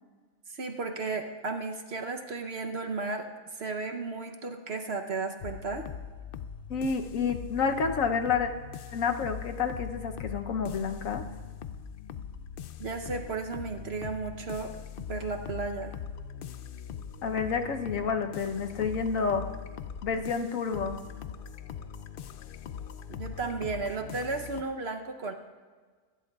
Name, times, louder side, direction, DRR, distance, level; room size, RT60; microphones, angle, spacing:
voice 1, 0.5-3.3 3.5-5.9 12.8-14.7 15.1-15.9 23.1-25.3, right 3 dB, 55° right, 4 dB, 1.0 m, -34 dB
sound 1, 5.4-24.6, left 8 dB, 85° left, 0.4 m, -41 dB
voice 2, 6.7-8.5 8.9-11.2 17.2-19.4 20.0-21.0, left 5 dB, 70° left, 6 dB, 1.2 m, -29 dB
25.5 x 12.0 x 2.4 m, 1.5 s
omnidirectional pair, 1.5 m